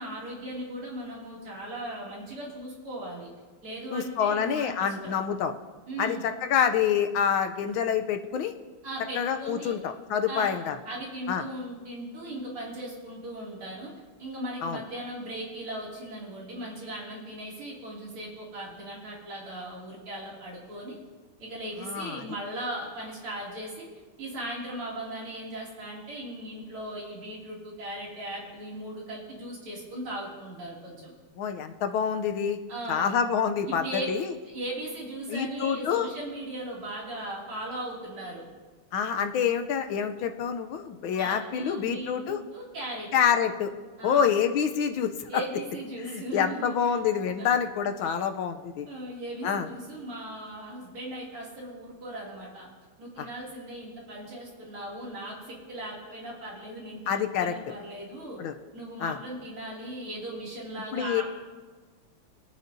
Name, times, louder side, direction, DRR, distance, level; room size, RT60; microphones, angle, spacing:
voice 1, 0.0-3.3 3.6-5.2 5.9-6.2 8.8-9.7 10.3-10.5 10.9-13.9 14.2-21.0 21.4-23.9 24.2-31.1 32.7-33.2 33.8-34.1 34.5-38.4 41.1-43.1 44.0-44.3 45.3-47.0 47.4-47.5 48.9-52.7 53.0-58.4 58.7-61.2, right 1 dB, 75° right, -4 dB, 3.6 m, -38 dB
voice 2, 3.9-5.5 6.0-8.5 9.1-10.8 11.3-11.4 14.6-14.8 21.8-22.2 31.4-32.6 32.9-34.3 35.3-36.1 38.9-42.4 43.1-43.7 44.0-45.3 46.0-48.9 49.4-49.7 53.2-53.3 57.1-57.5 58.4-58.5 59.0-59.2 60.9-61.2, left 7 dB, 75° left, 7 dB, 1.4 m, -27 dB
24.0 x 9.2 x 2.7 m, 1.4 s
omnidirectional pair, 2.4 m